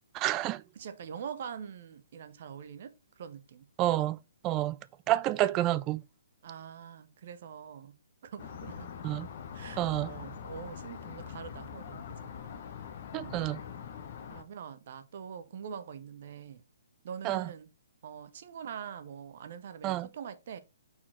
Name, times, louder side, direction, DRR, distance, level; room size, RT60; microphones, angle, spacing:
voice 1, 0.1-0.6 3.8-4.2 4.4-4.8 5.1-6.0 9.0-9.3 9.8-10.1 13.1-13.6 17.2-17.5 19.8-20.1, right 14 dB, 25° right, 0.3 m, -29 dB
voice 2, 0.7-3.7 6.4-8.0 8.2-8.9 9.5-12.3 13.1-13.4 14.3-16.6 17.0-17.7 18.0-20.6, right 7 dB, 45° right, 0.7 m, -44 dB
sound 1, 8.4-14.4, left 7 dB, 40° left, 1.0 m, -43 dB
5.7 x 4.5 x 4.1 m
figure-of-eight pair, 125°, 0 cm